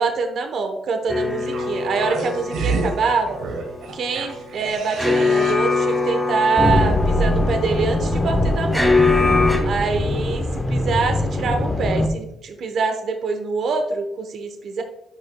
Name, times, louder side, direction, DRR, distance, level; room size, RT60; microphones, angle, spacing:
voice 1, 0.0-3.4 3.9-8.9 9.6-14.8, right 4 dB, 65° right, 6 dB, 0.9 m, -25 dB
sound 1, 1.1-9.6, left 3 dB, ahead, 1.7 m, -23 dB
sound 2, 1.4-5.8 6.1-6.2, right 3 dB, 80° right, 1.1 m, -29 dB
sound 3, 6.6-12.1, left 1 dB, 20° left, 0.9 m, -22 dB
11.5 x 4.9 x 2.2 m, 0.87 s
cardioid pair, 95°, 0 cm